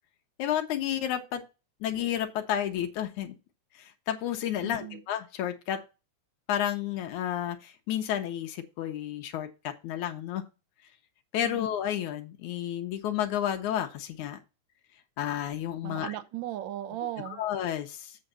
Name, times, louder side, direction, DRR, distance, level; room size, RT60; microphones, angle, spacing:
voice 1, 0.4-1.4 1.8-3.4 3.8-5.8 6.5-10.4 11.3-14.4 15.2-16.2 17.3-18.2, left 10 dB, 80° left, 2.3 m, -31 dB
voice 2, 4.6-5.0 11.4-11.6 15.8-17.4, right 13 dB, 85° right, 1.0 m, -37 dB
8.1 x 4.0 x 6.7 m
omnidirectional pair, 3.4 m